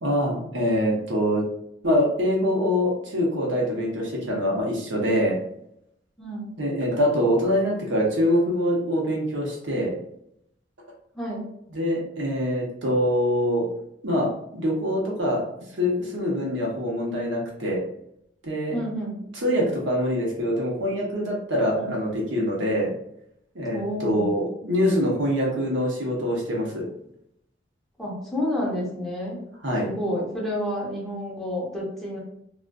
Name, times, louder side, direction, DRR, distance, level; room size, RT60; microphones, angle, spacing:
voice 1, 0.0-1.4 1.8-5.4 6.6-9.9 11.7-13.6 14.0-15.4 15.7-17.8 18.4-18.8 19.4-22.9 23.5-26.8 29.6-29.9, equal, 80° right, -3 dB, 0.9 m, -24 dB
voice 2, 6.2-6.5 11.1-11.4 18.7-19.2 21.7-21.9 23.7-24.3 28.0-29.4 29.8-32.2, equal, ahead, -5 dB, 0.7 m, -29 dB
2.4 x 2.3 x 2.2 m, 0.75 s
head